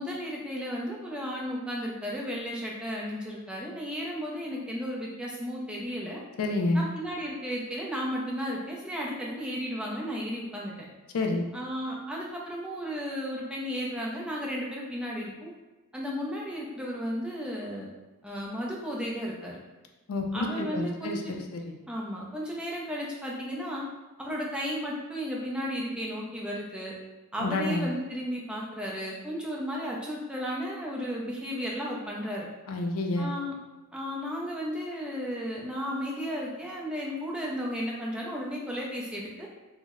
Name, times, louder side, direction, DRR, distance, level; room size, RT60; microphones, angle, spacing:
voice 1, 0.0-6.2 6.7-10.7 11.5-15.5 15.9-17.9 18.2-19.6 20.3-21.3 21.9-23.9 24.2-26.9 27.3-32.5 33.2-33.5 33.9-39.5, equal, 5° right, -4 dB, 0.4 m, -34 dB
voice 2, 6.4-6.9 11.1-11.5 20.1-21.8 27.4-27.9 32.7-33.3, left 2 dB, 65° left, 3 dB, 0.4 m, -29 dB
3.0 x 2.0 x 3.5 m, 1.2 s
head